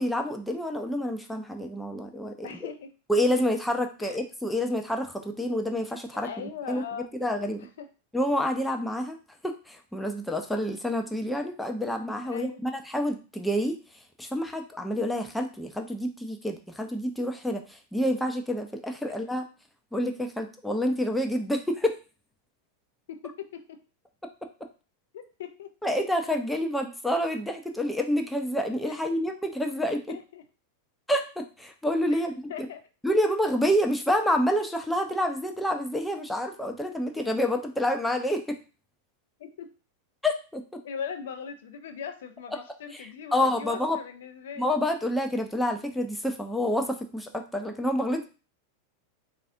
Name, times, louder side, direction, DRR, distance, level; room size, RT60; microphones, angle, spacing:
voice 1, 0.0-2.7 3.1-6.8 7.1-7.6 8.1-9.2 9.4-13.8 14.2-19.5 19.9-22.0 25.8-30.1 31.1-32.3 33.0-38.6 40.2-40.8 42.9-44.0 44.6-48.3, equal, 5° left, 4 dB, 0.4 m, -28 dB
voice 2, 2.4-2.9 4.0-4.2 6.1-7.1 7.6-7.9 12.3-12.6 23.1-23.8 25.1-25.7 28.9-29.0 30.1-30.4 32.1-32.2 32.5-32.8 39.4-39.7 40.8-44.8, left 7 dB, 60° left, 8 dB, 0.4 m, -39 dB
3.9 x 2.4 x 2.7 m, 0.33 s
figure-of-eight pair, 90°, 0 cm